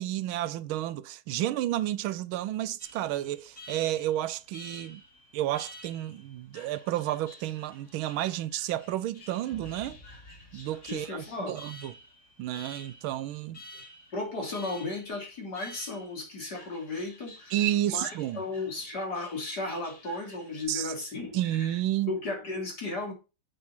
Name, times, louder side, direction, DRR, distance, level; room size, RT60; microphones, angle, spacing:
voice 1, 0.0-5.0 5.3-10.0 10.5-11.9 12.4-13.6 17.5-18.4 20.7-20.9 21.3-22.1, right 13 dB, 80° right, 1.4 m, -31 dB
Alarm, 2.8-20.6, left 2 dB, 35° left, 2.5 m, -51 dB
sound 1, 9.4-11.9, left 2 dB, 15° left, 2.9 m, -52 dB
voice 2, 10.9-11.6 13.7-13.8 14.1-17.5 17.8-18.1 18.3-21.8 22.1-23.1, left 2 dB, 50° left, 3.5 m, -35 dB
8.1 x 5.2 x 5.8 m
omnidirectional pair, 2.3 m